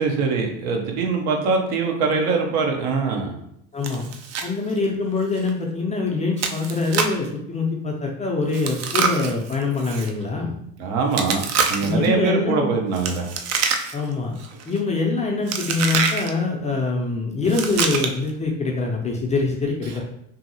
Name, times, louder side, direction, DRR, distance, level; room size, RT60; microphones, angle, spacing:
voice 1, 0.0-3.3 10.8-13.3, right 4 dB, 65° right, 2 dB, 0.8 m, -23 dB
voice 2, 3.7-4.0 4.4-10.6 11.8-12.7 13.9-14.4 14.7-20.0, left 3 dB, 20° left, -1 dB, 0.4 m, -24 dB
Chewing mastication, 3.8-4.5 4.8-4.9 5.4-5.5 6.4-7.2 8.5-10.1 11.1-12.1 12.9-14.1 14.4-14.8 15.5-16.3 17.4-18.3, right 5 dB, 40° right, 0.4 m, -25 dB
2.7 x 2.7 x 2.7 m, 0.72 s
hypercardioid pair, 85°, 41 cm